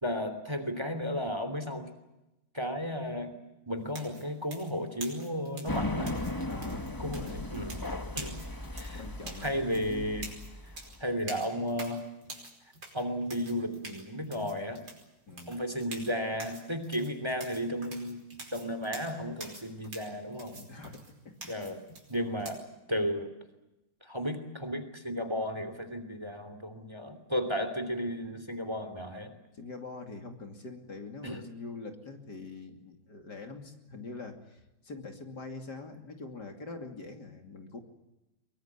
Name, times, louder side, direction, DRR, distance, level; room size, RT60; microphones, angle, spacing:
voice 1, 0.0-1.9 2.5-3.4 3.7-6.1 7.0-7.8 8.1-8.3 8.7-9.0 9.4-10.3 11.0-12.0 12.9-14.8 15.5-18.2 18.5-20.6 21.5-21.8 22.1-22.6 22.9-23.3 24.0-29.3 31.2-31.4, equal, 15° right, 9 dB, 2.9 m, -34 dB
sound 1, 3.9-22.5, right 2 dB, 65° right, 5.9 m, -47 dB
sound 2, 5.7-11.0, left 2 dB, 10° left, 1.2 m, -37 dB
voice 2, 6.5-7.5 8.9-10.2 15.3-15.6 20.6-21.5 22.9-23.0 29.5-37.8, left 3 dB, 55° left, 4 dB, 3.3 m, -44 dB
23.5 x 23.0 x 8.3 m, 0.95 s
omnidirectional pair, 2.1 m